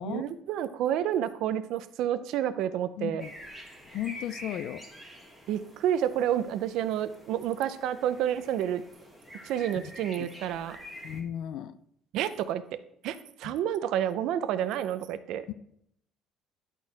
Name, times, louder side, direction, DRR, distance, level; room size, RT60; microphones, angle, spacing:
voice 1, 0.0-3.2 5.5-8.8 9.4-10.8 12.1-12.6 13.0-15.5, right 10 dB, 60° right, 11 dB, 0.5 m, -29 dB
voice 2, 3.0-3.3 3.9-4.8 9.8-9.9 10.2-10.3 11.0-11.8 13.4-13.5 15.5-15.6, left 11 dB, 55° left, 14 dB, 0.4 m, -35 dB
sound 1, 3.2-11.2, equal, ahead, 1.3 m, -47 dB
11.0 x 4.5 x 4.6 m, 0.70 s
cardioid pair, 180°, 0 cm